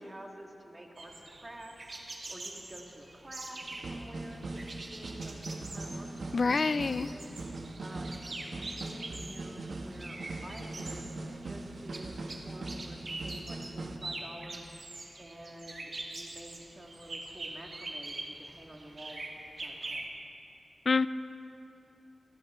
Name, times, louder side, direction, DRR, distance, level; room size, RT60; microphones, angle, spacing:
voice 1, 0.0-1.9 2.3-6.6 6.9-7.3 7.8-8.2 8.7-11.1 11.4-14.7 15.2-19.3 19.6-20.1, right 1 dB, 25° right, 0 dB, 1.9 m, -50 dB
sound 1, 1.0-20.1, right 2 dB, 55° right, 1.9 m, -44 dB
sound 2, 3.6-14.0, right 2 dB, 70° right, 1.5 m, -41 dB
voice 2, 6.3-7.1 20.9-21.1, left 4 dB, 55° left, 15 dB, 0.4 m, -26 dB
28.5 x 11.5 x 3.7 m, 2.9 s
wide cardioid pair, 95°, 0 cm